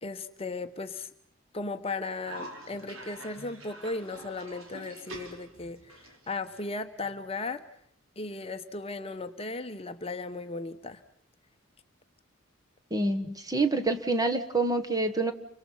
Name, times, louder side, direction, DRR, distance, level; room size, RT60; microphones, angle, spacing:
voice 1, 0.0-1.1 1.5-7.6 8.2-11.0, left 3 dB, 30° left, 8 dB, 1.0 m, -36 dB
Cough, 2.2-7.3, right 2 dB, 75° right, 3.8 m, -46 dB
voice 2, 12.9-15.3, right 2 dB, 20° right, 6 dB, 1.5 m, -27 dB
30.0 x 25.0 x 5.6 m, 0.65 s
head